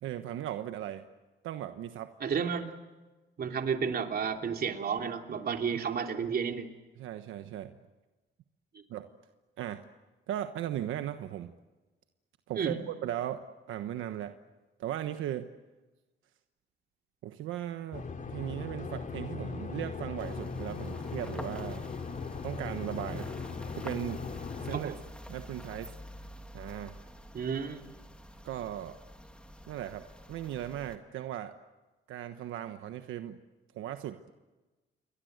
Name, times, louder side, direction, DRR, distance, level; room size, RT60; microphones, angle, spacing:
voice 1, 0.0-1.0 1.4-2.1 7.0-7.8 8.9-9.1 9.6-9.8 10.3-11.5 12.5-14.3 14.8-15.5 17.2-21.8 22.4-23.3 23.7-24.2 24.6-24.9 25.3-25.9 26.5-26.9 28.4-29.0 29.7-31.5 32.1-33.4 33.7-34.3, right 11 dB, 85° right, 8 dB, 1.2 m, -37 dB
voice 2, 2.2-2.7 3.4-6.7 12.6-12.8 24.7-25.0 27.3-27.8, right 6 dB, 50° right, 4 dB, 3.2 m, -32 dB
sound 1, 17.9-24.8, left 5 dB, 40° left, 3.1 m, -38 dB
sound 2, 20.2-31.0, left 1 dB, 5° left, 2.9 m, -49 dB
29.0 x 23.0 x 8.1 m, 1.2 s
cardioid pair, 90°, 20 cm